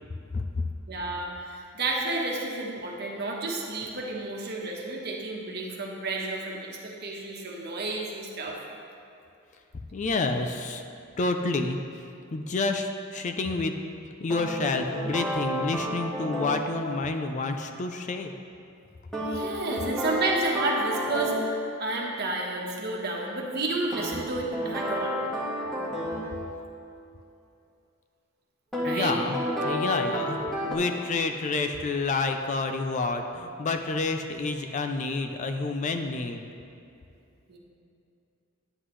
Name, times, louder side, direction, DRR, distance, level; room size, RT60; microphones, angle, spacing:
voice 1, 0.9-8.6 19.3-25.2 28.8-29.1 37.5-37.6, right 2 dB, 50° right, -1 dB, 1.2 m, -31 dB
voice 2, 9.9-10.8 11.2-11.8 12.3-13.7 14.2-18.3 28.8-29.4 29.6-36.4, left 3 dB, 35° left, 6 dB, 0.4 m, -29 dB
sound 1, 14.3-16.7 19.1-21.5 23.9-26.3 28.7-29.0 29.3-30.7, equal, 5° left, 1.6 m, -30 dB
9.7 x 7.9 x 3.2 m, 2.6 s
head